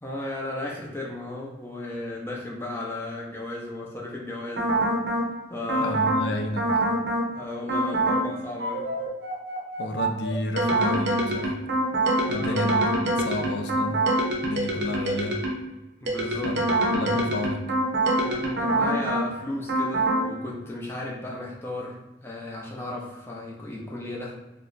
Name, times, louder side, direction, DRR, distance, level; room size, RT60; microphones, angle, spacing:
voice 1, 0.0-4.9 5.5-6.0 7.3-8.9 12.2-12.7 16.0-16.6 18.2-24.3, left 2 dB, 15° left, -3 dB, 0.5 m, -35 dB
sound 1, 4.6-5.3 5.7-6.3 6.6-7.3 7.7-8.3 8.6-15.7 16.1-19.3 19.7-20.3, right 1 dB, 70° right, 0.7 m, -25 dB
voice 2, 5.8-6.7 9.8-11.6 12.3-14.0 14.4-15.4 16.5-17.6, left 1 dB, 75° left, 5 dB, 0.4 m, -31 dB
2.8 x 2.1 x 3.8 m, 1.1 s
head